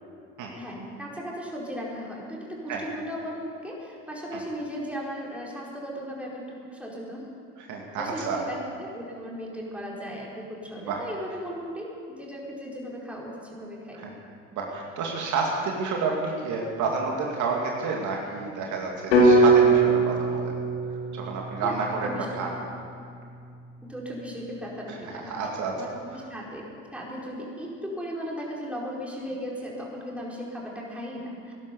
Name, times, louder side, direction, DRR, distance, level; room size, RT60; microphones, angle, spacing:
voice 1, 0.5-7.3 8.0-14.1 21.6-22.6 23.8-26.6 26.9-31.5, equal, 5° right, -4 dB, 4.7 m, -37 dB
voice 2, 7.7-8.4 10.9-11.0 13.9-14.1 14.5-20.6 21.1-22.5 25.0-25.8, right 4 dB, 55° right, -1 dB, 2.5 m, -30 dB
sound 1, 19.1-23.2, right 2 dB, 90° left, 3.6 m, -22 dB
17.5 x 11.0 x 7.0 m, 2.4 s
hypercardioid pair, 80°, 36 cm